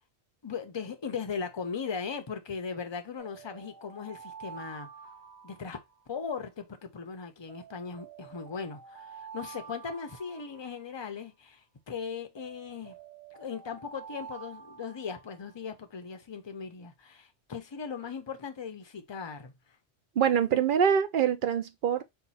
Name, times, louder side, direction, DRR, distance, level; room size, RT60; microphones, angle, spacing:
voice 1, 0.4-4.9 5.4-5.8 6.1-13.0 13.4-19.5, left 6 dB, 30° left, 0.6 m, -38 dB
sound 1, 3.2-6.4 7.5-11.2 12.4-15.6, right 6 dB, 40° right, 1.9 m, -49 dB
voice 2, 20.2-22.0, right 8 dB, 55° right, 0.7 m, -25 dB
4.5 x 2.4 x 4.0 m
omnidirectional pair, 1.2 m